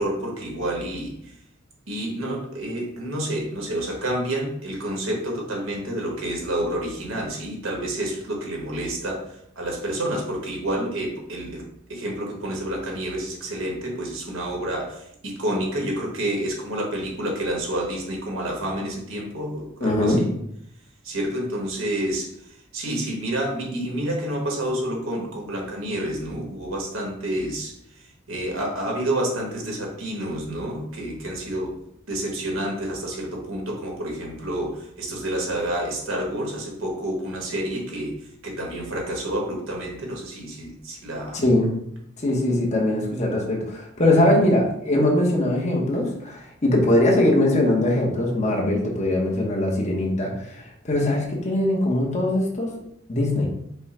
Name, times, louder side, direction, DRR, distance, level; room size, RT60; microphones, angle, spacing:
voice 1, 0.0-1.3 1.9-20.3 21.0-22.3 22.7-31.7 32.1-38.2 38.4-41.4, right 1 dB, 70° right, -1 dB, 1.4 m, -29 dB
voice 2, 19.8-20.2 41.3-41.7 42.2-52.7 53.1-53.5, left 1 dB, 35° left, -2 dB, 1.0 m, -21 dB
5.4 x 2.3 x 4.2 m, 0.74 s
head